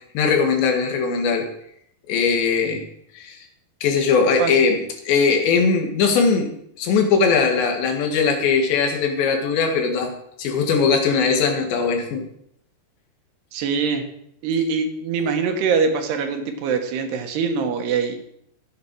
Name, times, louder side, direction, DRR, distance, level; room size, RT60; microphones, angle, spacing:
voice 1, 0.2-1.5 2.1-2.8 3.1-3.4 3.8-6.5 6.8-10.1 10.4-12.2, left 5 dB, 85° left, 3 dB, 4.0 m, -20 dB
voice 2, 13.5-14.0 14.4-18.2, right 5 dB, 75° right, 4 dB, 3.4 m, -23 dB
14.5 x 9.5 x 4.7 m, 0.71 s
omnidirectional pair, 4.9 m